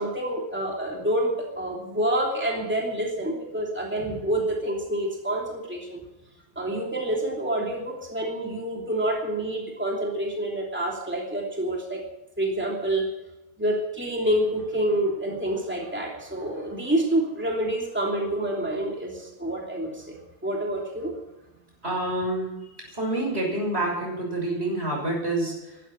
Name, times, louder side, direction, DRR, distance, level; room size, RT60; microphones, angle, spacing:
voice 1, 0.0-6.0 6.5-12.0 12.4-13.1 13.6-21.1, right 1 dB, 10° right, -1 dB, 3.0 m, -27 dB
voice 2, 21.8-25.8, right 1 dB, 70° right, -1 dB, 6.7 m, -28 dB
16.0 x 12.0 x 7.6 m, 0.97 s
omnidirectional pair, 1.1 m